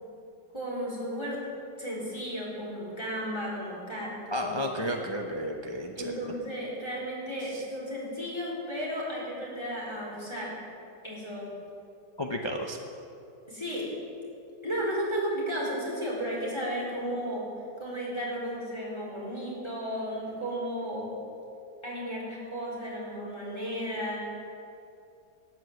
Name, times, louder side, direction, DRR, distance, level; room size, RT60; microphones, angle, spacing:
voice 1, 0.5-1.4 1.8-4.6 6.0-10.6 11.0-11.5 13.5-13.9 14.6-17.5 17.8-21.1 21.8-24.2, equal, 15° left, -6 dB, 3.8 m, -34 dB
voice 2, 4.3-6.3 7.5-7.6 12.2-12.8, equal, 40° left, 2 dB, 0.4 m, -32 dB
12.5 x 9.0 x 7.8 m, 2.6 s
omnidirectional pair, 1.9 m